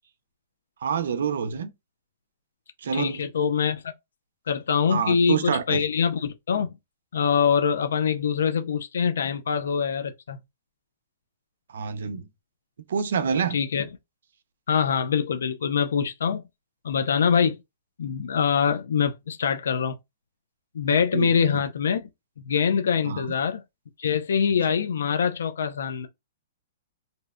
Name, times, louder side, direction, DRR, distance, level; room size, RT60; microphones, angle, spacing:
voice 1, 0.8-1.7 2.8-3.3 4.9-5.8 11.7-12.3 12.9-13.6 21.1-21.5 23.1-23.3, right 6 dB, 65° right, 0.4 m, -27 dB
voice 2, 2.9-3.9 4.5-6.7 7.1-10.4 13.5-13.9 14.7-16.4 16.8-17.6 18.0-20.0 20.7-22.0 22.4-23.6 24.0-26.1, left 6 dB, 85° left, 0.3 m, -24 dB
2.6 x 2.1 x 2.3 m
hypercardioid pair, 180°, 0 cm